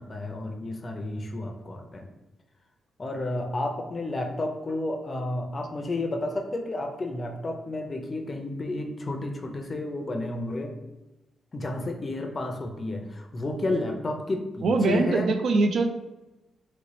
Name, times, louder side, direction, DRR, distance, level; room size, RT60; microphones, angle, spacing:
voice 1, 0.0-2.1 3.0-10.8 11.5-15.3, left 2 dB, 30° left, 3 dB, 0.5 m, -31 dB
voice 2, 14.6-15.9, right 3 dB, 65° right, 6 dB, 0.4 m, -22 dB
3.0 x 2.7 x 3.1 m, 1.0 s
cardioid pair, 105°, 0 cm